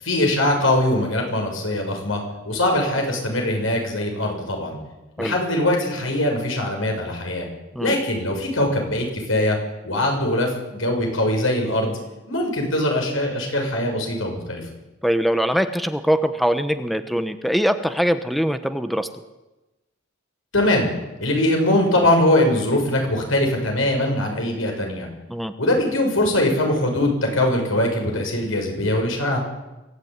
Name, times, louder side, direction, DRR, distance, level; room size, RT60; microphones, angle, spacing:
voice 1, 0.0-4.8 5.2-7.5 7.8-9.6 9.8-12.0 12.3-14.6 20.5-20.9 21.2-25.1 25.6-29.4, left 1 dB, 85° left, 2 dB, 7.3 m, -22 dB
voice 2, 15.0-19.1 25.3-25.5, equal, ahead, 9 dB, 1.1 m, -22 dB
24.0 x 16.5 x 9.6 m, 1.0 s
head